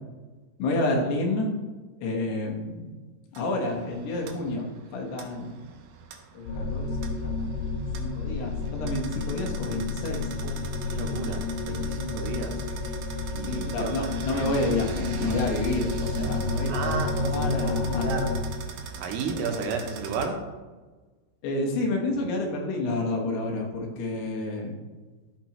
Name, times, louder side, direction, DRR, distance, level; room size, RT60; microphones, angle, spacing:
voice 1, 0.6-1.5 2.0-2.9 3.3-5.6 6.3-6.9 7.2-10.2 13.4-18.2 19.3-19.4 21.4-24.8, left 2 dB, 85° left, 0 dB, 3.4 m, -30 dB
sound 1, 3.3-20.3, right 7 dB, 75° right, 2.4 m, -42 dB
sound 2, 6.5-18.4, left 3 dB, 65° left, 3.0 m, -30 dB
voice 2, 10.9-12.6 13.3-14.1 14.3-14.4 16.7-18.3 19.0-20.4, right 5 dB, 90° right, 3 dB, 3.2 m, -33 dB
13.0 x 6.1 x 3.0 m, 1.3 s
omnidirectional pair, 4.6 m